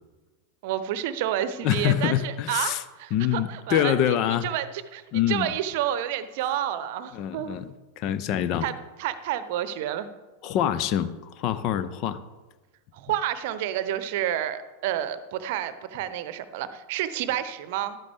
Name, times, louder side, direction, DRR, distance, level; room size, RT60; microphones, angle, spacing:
voice 1, 0.6-4.0 4.4-7.6 8.6-10.1 12.9-18.0, right 11 dB, 50° right, 13 dB, 0.8 m, -30 dB
voice 2, 1.6-2.8 3.1-4.5 5.1-5.5 7.1-7.7 8.0-8.7 10.4-12.2, left 10 dB, 40° left, 14 dB, 0.7 m, -25 dB
13.5 x 12.0 x 3.5 m, 1.2 s
figure-of-eight pair, 90°, 0 cm